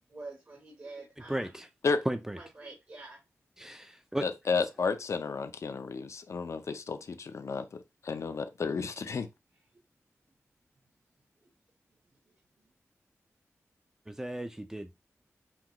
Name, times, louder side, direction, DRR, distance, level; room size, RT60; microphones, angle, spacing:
voice 1, 0.1-1.5 2.4-3.2 12.3-12.4, right 3 dB, 45° right, 1.0 m, -46 dB
voice 2, 1.3-1.7 2.1-2.4 3.6-4.3 14.1-14.9, right 1 dB, 10° right, 0.4 m, -35 dB
voice 3, 4.2-7.6 8.0-9.3, left 4 dB, 65° left, 0.5 m, -32 dB
5.8 x 2.3 x 2.9 m
wide cardioid pair, 95°, 5 cm